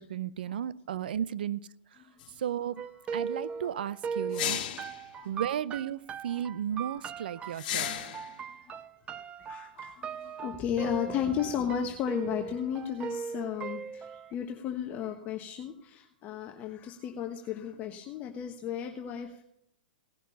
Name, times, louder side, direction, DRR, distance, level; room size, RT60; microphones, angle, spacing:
voice 1, 0.0-1.7 2.4-2.8 3.1-4.6 5.3-6.0 6.2-7.9, right 9 dB, 70° right, 18 dB, 0.6 m, -34 dB
voice 2, 2.0-2.4 3.0-3.1 3.4-3.7 4.2-4.5 4.8-5.3 6.2-6.5 6.7-7.1 7.3-7.5 8.2-8.8 9.4-19.4, left 9 dB, 30° left, 4 dB, 1.2 m, -35 dB
sound 1, 2.2-2.3 4.3-5.0 7.6-8.3, left 11 dB, 55° left, 2.0 m, -33 dB
sound 2, 2.8-14.3, right 6 dB, 20° right, 0.5 m, -39 dB
17.5 x 6.5 x 6.8 m, 0.77 s
hypercardioid pair, 120°, 5 cm